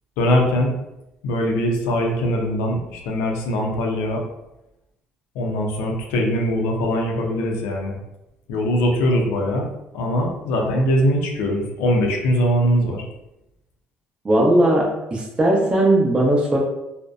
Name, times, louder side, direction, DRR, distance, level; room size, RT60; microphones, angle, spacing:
voice 1, 0.2-0.7 1.2-4.2 5.4-7.9 8.5-9.7 9.9-13.0, equal, 85° left, 0 dB, 0.5 m, -21 dB
voice 2, 14.2-16.6, right 1 dB, 25° right, -2 dB, 0.7 m, -18 dB
2.5 x 2.1 x 2.4 m, 0.91 s
cardioid pair, 95°, 4 cm